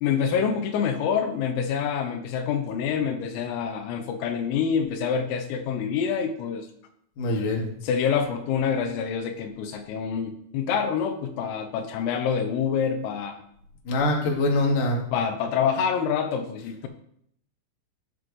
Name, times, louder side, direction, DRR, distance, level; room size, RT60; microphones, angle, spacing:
voice 1, 0.0-6.7 7.8-13.4 15.1-16.9, left 7 dB, 85° left, 6 dB, 3.5 m, -26 dB
voice 2, 7.2-7.6 13.9-15.0, left 2 dB, 55° left, -1 dB, 2.8 m, -23 dB
15.5 x 7.4 x 3.2 m, 0.70 s
omnidirectional pair, 5.9 m